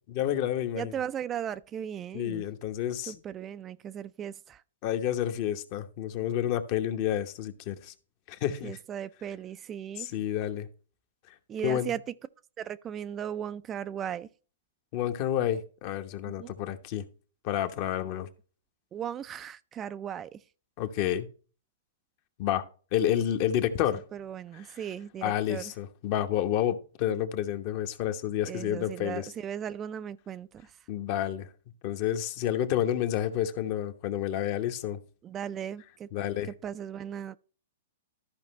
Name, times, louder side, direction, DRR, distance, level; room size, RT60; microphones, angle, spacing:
voice 1, 0.1-0.9 2.1-3.2 4.8-7.9 8.3-8.8 10.0-10.7 11.6-11.9 14.9-17.0 17.4-18.3 20.8-21.3 22.4-22.6 22.9-24.0 24.5-24.7 25.2-29.3 30.9-31.5 31.8-35.0 36.1-36.5, left 11 dB, 45° left, 1.0 m, -29 dB
voice 2, 0.8-2.4 3.1-4.6 8.6-10.1 11.5-12.0 12.6-14.3 16.3-16.5 18.1-18.3 18.9-20.4 24.1-25.7 28.5-30.5 35.2-36.1 36.6-37.4, right 9 dB, 25° right, 0.4 m, -37 dB
13.5 x 5.1 x 3.1 m
hypercardioid pair, 120°, 0 cm